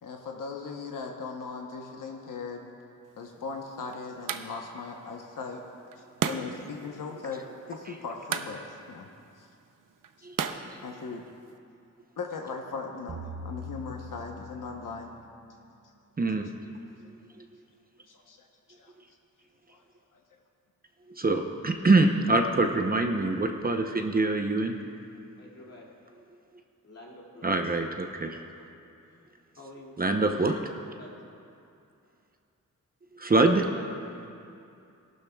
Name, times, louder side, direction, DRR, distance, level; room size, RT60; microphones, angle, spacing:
voice 1, 0.0-2.7 3.2-5.6 6.2-7.4 7.7-9.1 9.4-9.5 10.2-11.2 12.2-15.1 18.1-18.5 18.8-18.9 19.7-19.8 20.1-20.2, left 4 dB, 75° left, 1 dB, 0.9 m, -39 dB
sound 1, 3.1-11.6, right 7 dB, 75° right, 0.6 m, -38 dB
sound 2, 13.1-15.3, left 1 dB, 50° right, 1.0 m, -41 dB
voice 2, 16.2-16.5 21.1-24.8 27.4-28.4 30.0-30.6 33.1-33.7, right 2 dB, 25° right, 4 dB, 0.7 m, -24 dB
voice 3, 25.4-25.9 26.8-27.5 29.1-29.3 29.6-29.9 31.0-31.2 33.7-34.3, left 1 dB, 50° left, -4 dB, 2.4 m, -49 dB
17.5 x 12.0 x 2.3 m, 2.6 s
wide cardioid pair, 90°, 33 cm